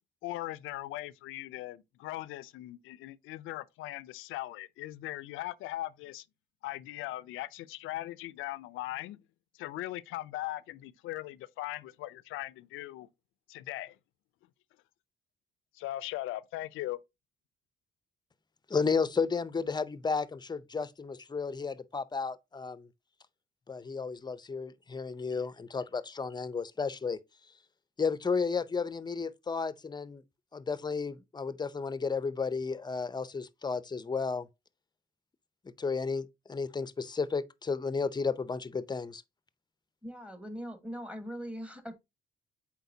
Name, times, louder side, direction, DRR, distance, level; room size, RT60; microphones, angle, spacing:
voice 1, 0.2-6.2 6.6-9.2 9.6-13.1 13.5-14.0 15.7-17.0, left 16 dB, 90° left, 0.5 m, -39 dB
voice 2, 18.7-22.9 23.7-27.2 28.0-30.2 30.5-34.5 35.8-39.2, left 5 dB, 20° left, 0.5 m, -33 dB
voice 3, 40.0-41.9, equal, 5° right, 1.4 m, -41 dB
8.2 x 4.4 x 2.7 m
cardioid pair, 90°, 20 cm